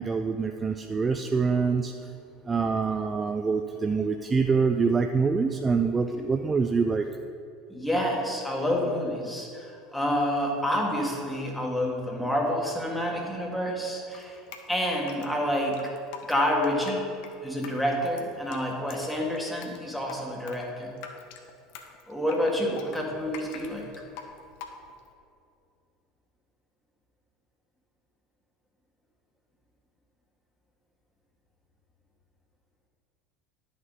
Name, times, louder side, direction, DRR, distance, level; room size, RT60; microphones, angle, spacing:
voice 1, 0.0-1.9 2.5-7.0, right 5 dB, 20° right, 6 dB, 0.4 m, -25 dB
voice 2, 7.7-14.4 14.7-15.9 16.3-17.1 17.4-20.9 22.1-23.9, equal, 5° left, 0 dB, 1.7 m, -28 dB
Drip, 14.1-25.1, left 7 dB, 55° left, 0.8 m, -45 dB
10.5 x 6.2 x 4.0 m, 2.5 s
figure-of-eight pair, 70°, 0 cm